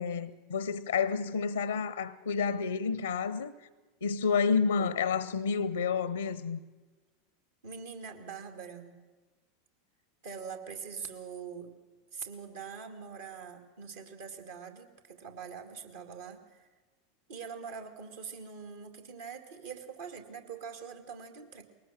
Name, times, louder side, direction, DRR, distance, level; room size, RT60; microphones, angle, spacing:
voice 1, 0.0-3.5 4.0-6.6, left 5 dB, 85° left, 0.6 m, -30 dB
voice 2, 7.6-9.0 10.2-11.7 12.1-16.7 17.3-21.6, right 6 dB, 70° right, 2.4 m, -43 dB
22.0 x 18.5 x 7.4 m
hypercardioid pair, 85°, 0 cm